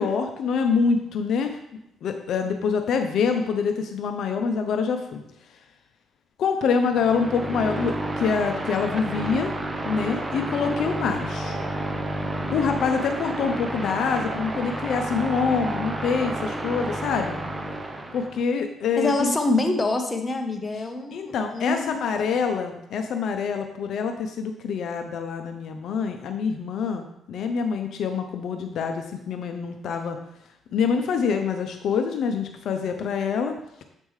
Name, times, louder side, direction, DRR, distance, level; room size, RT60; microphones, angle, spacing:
voice 1, 0.0-1.6 2.0-5.2 6.4-9.5 9.8-11.6 12.5-17.4 18.1-19.3 21.1-30.2 30.7-33.5, left 5 dB, 70° left, 5 dB, 0.6 m, -25 dB
sound 1, 6.9-18.4, right 1 dB, 20° right, 0.7 m, -30 dB
voice 2, 19.0-22.0, left 2 dB, 25° left, 4 dB, 0.9 m, -25 dB
7.4 x 5.3 x 3.2 m, 0.81 s
cardioid pair, 90°, 0 cm